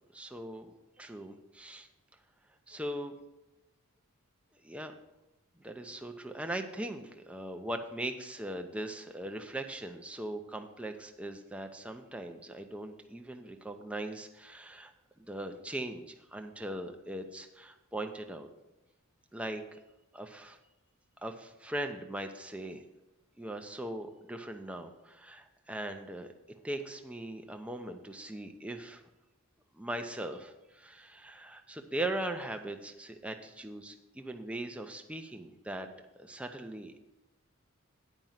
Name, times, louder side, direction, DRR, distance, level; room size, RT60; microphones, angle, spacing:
voice 1, 0.1-0.7 1.0-1.9 2.7-3.1 4.6-4.9 5.6-14.9 15.2-18.5 19.3-19.8 20.1-20.6 21.2-22.8 23.4-26.3 26.6-29.0 29.8-35.9 36.2-37.0, right 1 dB, 5° right, 5 dB, 0.6 m, -40 dB
9.1 x 5.3 x 7.3 m, 1.0 s
head